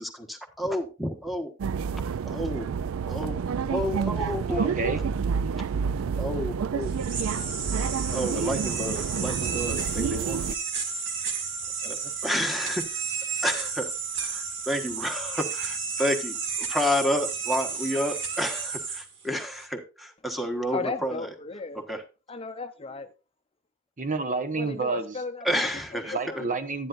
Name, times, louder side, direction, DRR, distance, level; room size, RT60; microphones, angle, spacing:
voice 1, 0.0-1.5 2.2-2.7 3.1-5.0 5.7-5.8 6.2-6.9 8.1-10.5 11.8-12.8 13.4-13.9 14.2-21.3 21.7-22.0 25.4-26.4, equal, ahead, 1.3 m, -30 dB
sound 1, 1.6-10.5, right 6 dB, 80° right, 0.4 m, -29 dB
voice 2, 4.5-5.0 24.0-25.2 26.1-26.9, right 3 dB, 40° right, 0.9 m, -29 dB
sound 2, 6.8-19.7, right 5 dB, 65° right, 2.2 m, -32 dB
voice 3, 20.7-21.8 22.3-23.1 24.5-25.7 25.9-26.5, left 3 dB, 30° left, 0.6 m, -35 dB
11.0 x 10.0 x 2.5 m
head